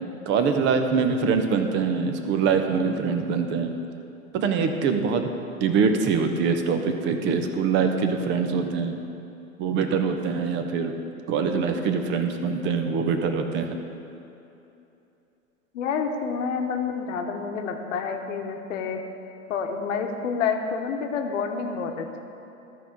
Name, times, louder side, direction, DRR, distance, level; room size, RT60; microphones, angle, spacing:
voice 1, 0.3-3.7 4.3-5.3 5.6-9.0 9.6-11.0 11.3-13.8, right 5 dB, 25° right, 6 dB, 0.7 m, -24 dB
voice 2, 15.7-19.0 19.5-22.2, left 5 dB, 60° left, 4 dB, 1.1 m, -28 dB
13.0 x 4.7 x 5.3 m, 2.8 s
hypercardioid pair, 105°, 44 cm